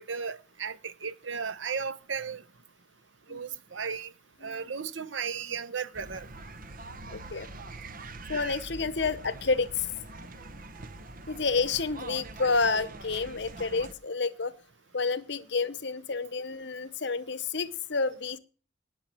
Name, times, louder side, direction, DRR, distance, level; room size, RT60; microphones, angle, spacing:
voice 1, 0.0-2.4 3.3-4.1 4.4-6.3, right 6 dB, 85° right, 1.0 m, -35 dB
sound 1, 5.9-13.9, right 2 dB, 50° right, 1.2 m, -44 dB
voice 2, 7.1-7.5 8.3-9.9 11.3-14.5 14.9-18.4, left 4 dB, 65° left, 1.0 m, -29 dB
19.0 x 7.0 x 4.6 m
head